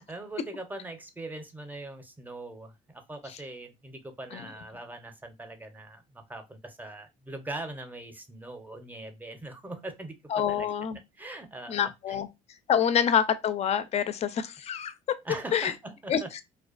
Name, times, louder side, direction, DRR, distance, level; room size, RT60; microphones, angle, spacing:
voice 1, 0.0-10.7 11.2-12.2 15.2-16.3, right 2 dB, 10° right, 0.5 m, -41 dB
voice 2, 10.3-11.0 11.7-12.3 12.7-15.2 15.5-15.7 16.1-16.4, left 8 dB, 40° left, 0.4 m, -27 dB
2.4 x 2.2 x 2.3 m
supercardioid pair, 85°, 17 cm